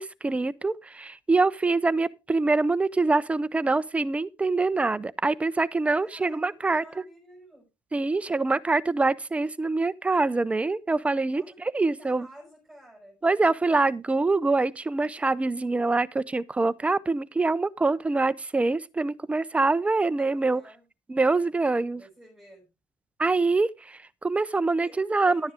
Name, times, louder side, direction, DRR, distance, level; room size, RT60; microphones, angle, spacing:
voice 1, 0.0-6.8 7.9-12.3 13.2-20.6 21.1-22.0 23.2-25.5, right 3 dB, 15° right, 0.5 m, -25 dB
voice 2, 6.0-7.6 11.3-11.6 11.9-13.2 20.2-20.8 22.0-22.7 24.8-25.5, right 1 dB, ahead, 6.1 m, -51 dB
11.5 x 9.8 x 3.5 m
cardioid pair, 140°, 9 cm